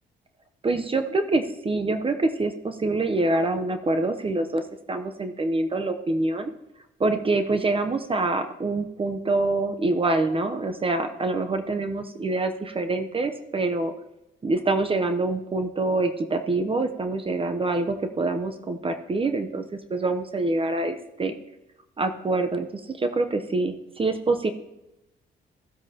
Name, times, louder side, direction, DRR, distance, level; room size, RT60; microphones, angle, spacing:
voice 1, 0.6-4.6 4.9-6.5 7.0-13.9 14.4-21.3 22.0-24.5, right 2 dB, 25° right, 7 dB, 0.8 m, -25 dB
16.0 x 7.9 x 2.9 m, 0.92 s
cardioid pair, 90°, 20 cm